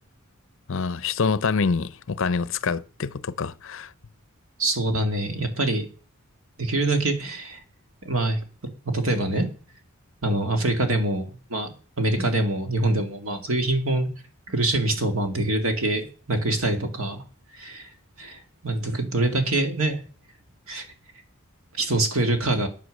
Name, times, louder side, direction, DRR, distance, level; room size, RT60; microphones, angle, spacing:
voice 1, 0.7-3.9, left 5 dB, 65° left, 0.6 m, -26 dB
voice 2, 4.6-5.9 6.6-7.6 8.0-8.4 8.8-9.5 10.2-11.7 12.0-14.1 14.5-17.2 17.5-17.9 18.2-20.0 20.7-20.8 21.7-22.7, right 2 dB, 75° right, 2.3 m, -25 dB
11.0 x 7.4 x 6.5 m
head